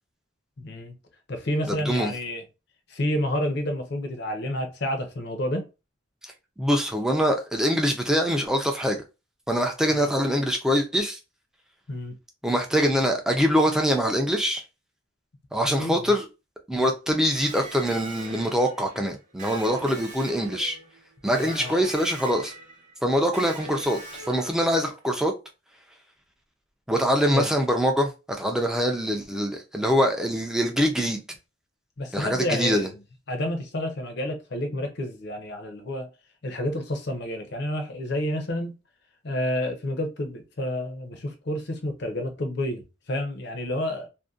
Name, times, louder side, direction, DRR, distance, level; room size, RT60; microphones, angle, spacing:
voice 1, 0.6-0.9 1.3-2.4 2.9-5.7 9.9-10.1 11.9-12.2 15.6-15.9 21.3-21.8 27.3-27.5 32.0-32.9 33.3-36.1 36.4-38.7 39.2-44.1, left 1 dB, 55° left, 0.6 m, -29 dB
voice 2, 1.7-2.1 6.2-9.0 9.5-11.2 12.4-14.6 15.5-16.3 16.7-20.8 21.2-22.5 23.0-24.0 24.3-25.3 26.9-28.1 28.4-31.2 32.1-32.9, equal, 5° right, 0.3 m, -24 dB
Electric guitar, 17.3-25.0, right 2 dB, 35° right, 0.8 m, -42 dB
2.6 x 2.1 x 2.3 m
head